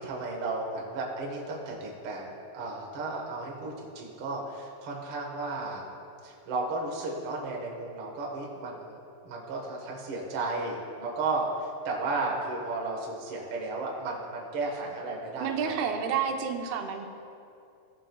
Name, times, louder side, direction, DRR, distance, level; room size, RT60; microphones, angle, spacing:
voice 1, 0.0-5.8 6.2-9.0 9.2-16.1, right 3 dB, 55° right, -2 dB, 1.6 m, -34 dB
voice 2, 15.4-17.1, right 7 dB, 90° right, 4 dB, 2.7 m, -30 dB
16.5 x 7.4 x 2.3 m, 2.5 s
omnidirectional pair, 4.3 m